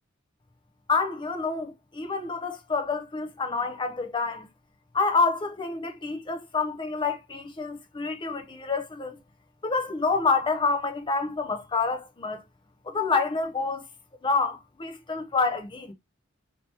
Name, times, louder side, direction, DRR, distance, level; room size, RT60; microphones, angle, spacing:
voice 1, 0.9-4.5 4.9-9.2 9.6-12.4 12.8-13.8 14.2-15.9, left 4 dB, 25° left, 0.6 m, -28 dB
2.9 x 2.8 x 3.3 m
head